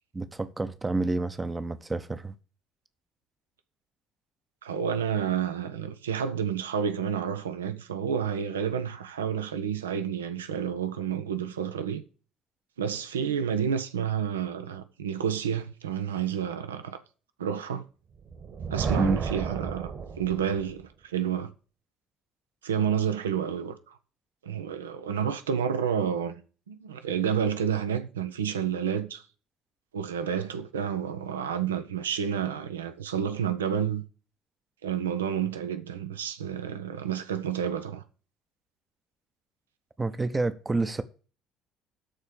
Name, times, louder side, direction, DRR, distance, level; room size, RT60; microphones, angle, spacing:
voice 1, 0.1-2.3 19.0-19.2 40.0-41.0, right 3 dB, 20° right, 0.9 m, -28 dB
voice 2, 4.6-12.0 12.8-17.0 17.4-17.8 18.7-21.5 22.6-24.0 24.4-26.3 26.7-29.2 29.9-34.0 34.8-38.0, right 8 dB, 75° right, 0.9 m, -30 dB
Thunder, 18.1-20.8, right 5 dB, 45° right, 1.8 m, -33 dB
13.0 x 4.4 x 6.6 m
figure-of-eight pair, 55°, 0 cm